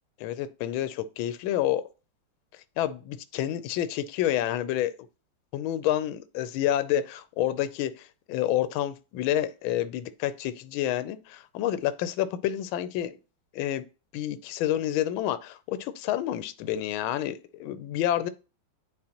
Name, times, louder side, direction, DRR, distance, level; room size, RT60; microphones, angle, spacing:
voice 1, 0.2-1.8 2.8-4.9 5.5-13.2 13.5-13.8 14.1-18.3, left 12 dB, 75° left, 1.3 m, -29 dB
9.6 x 4.0 x 2.9 m
omnidirectional pair, 2.4 m